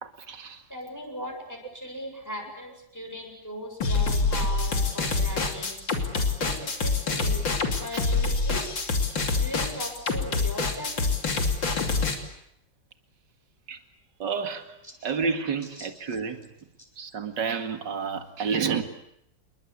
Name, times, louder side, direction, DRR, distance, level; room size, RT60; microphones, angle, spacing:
voice 1, 0.0-0.6 13.7-13.8 14.2-14.7 15.0-16.4 17.0-18.8, right 6 dB, 70° right, 7 dB, 2.6 m, -30 dB
voice 2, 0.7-5.8 6.4-8.7 9.4-11.0 15.8-15.9, equal, 10° left, 2 dB, 7.4 m, -38 dB
sound 1, 3.8-12.2, left 4 dB, 85° left, 3.6 m, -26 dB
28.5 x 22.5 x 8.4 m, 0.78 s
omnidirectional pair, 2.0 m